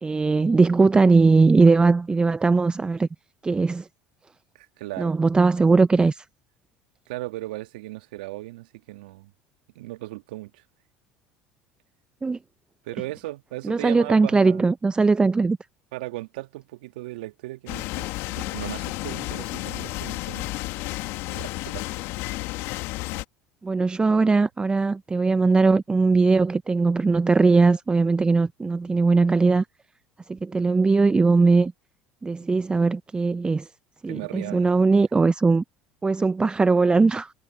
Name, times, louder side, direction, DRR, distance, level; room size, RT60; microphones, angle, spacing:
voice 1, 0.0-3.1 3.4-3.9 5.0-6.2 12.2-12.4 13.6-15.6 23.6-29.6 30.3-31.7 32.2-33.7 34.0-35.6 36.0-37.3, right 4 dB, 20° right, 0.7 m, -20 dB
voice 2, 4.6-5.1 7.1-9.3 9.8-10.6 12.8-14.7 15.9-20.6 21.3-21.9 34.1-34.7, right 18 dB, 75° right, 1.9 m, -37 dB
sound 1, 17.7-23.2, left 21 dB, 65° left, 2.1 m, -32 dB
hypercardioid pair, 70°, 5 cm